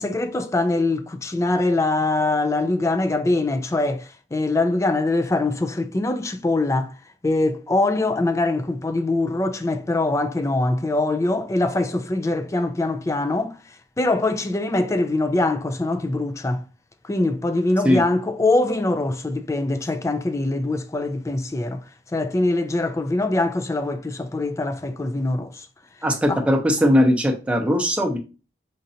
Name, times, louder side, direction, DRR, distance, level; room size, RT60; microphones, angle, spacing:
voice 1, 0.0-6.9 7.2-13.6 14.0-16.6 17.0-21.8 22.1-25.7 26.3-26.4, left 2 dB, 15° left, 0.3 m, -23 dB
voice 2, 26.0-28.2, equal, 5° right, 0.7 m, -19 dB
5.1 x 2.5 x 2.7 m
head